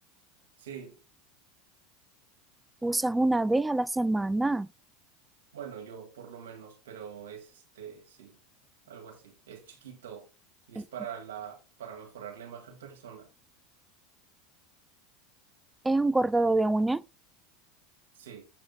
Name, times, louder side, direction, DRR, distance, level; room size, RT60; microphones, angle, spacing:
voice 1, 0.6-1.0 5.5-8.4 8.9-10.3 10.7-13.3 18.1-18.5, right 8 dB, 85° right, 1.7 m, -44 dB
voice 2, 2.8-4.7 10.8-10.9 15.8-17.0, right 2 dB, 10° right, 0.3 m, -25 dB
7.6 x 3.7 x 3.9 m
hypercardioid pair, 105°, 0 cm